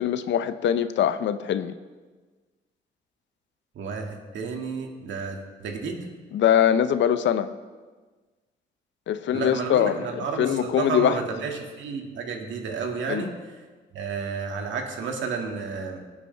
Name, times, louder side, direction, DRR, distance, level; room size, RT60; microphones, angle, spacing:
voice 1, 0.0-1.7 6.3-7.5 9.1-11.2 13.1-13.3, left 9 dB, 70° left, 12 dB, 0.6 m, -23 dB
voice 2, 3.8-6.1 9.3-13.3 13.9-16.0, right 5 dB, 70° right, 2 dB, 1.9 m, -31 dB
18.5 x 8.3 x 3.3 m, 1.4 s
cardioid pair, 90°, 20 cm